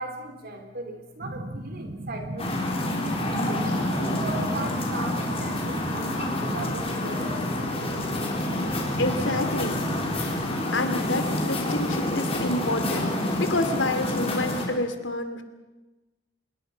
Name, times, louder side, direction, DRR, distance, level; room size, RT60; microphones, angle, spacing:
voice 1, 0.0-2.9 3.4-8.0, right 2 dB, 55° right, 5 dB, 4.0 m, -38 dB
sound 1, 1.2-10.6, right 1 dB, 40° right, 1.3 m, -37 dB
sound 2, 2.4-14.7, left 1 dB, 35° left, 4.4 m, -28 dB
voice 2, 9.0-9.8 10.7-15.4, left 2 dB, 80° left, 8 dB, 2.6 m, -28 dB
26.0 x 22.0 x 5.8 m, 1.1 s
head